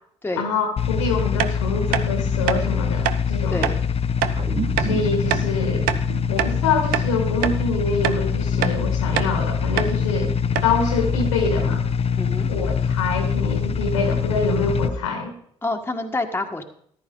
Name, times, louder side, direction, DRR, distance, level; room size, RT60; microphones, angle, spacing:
voice 1, 0.4-3.7 4.8-5.9 6.3-10.3 10.6-11.9 12.5-15.3, left 3 dB, 85° left, 4 dB, 2.0 m, -25 dB
sound 1, 0.8-14.9, left 6 dB, 40° left, 0.8 m, -24 dB
sound 2, 1.4-1.5 1.9-2.1 2.5-2.6 3.1-3.2 3.6-3.8 4.2-4.4 4.8-4.9 5.3-5.5 5.9-6.6 6.9-7.1 7.4-7.6 8.0-8.2 8.6-8.8 9.2-9.3 9.8-9.9 10.2-10.3 10.6-10.8, right 11 dB, 70° right, 0.7 m, -24 dB
voice 2, 3.5-3.8 12.2-12.5 15.6-16.6, left 2 dB, 15° left, 4 dB, 1.6 m, -27 dB
sound 3, 4.3-9.1, right 6 dB, 40° right, 1.6 m, -34 dB
14.0 x 11.5 x 3.9 m, 0.64 s
hypercardioid pair, 50°, 15 cm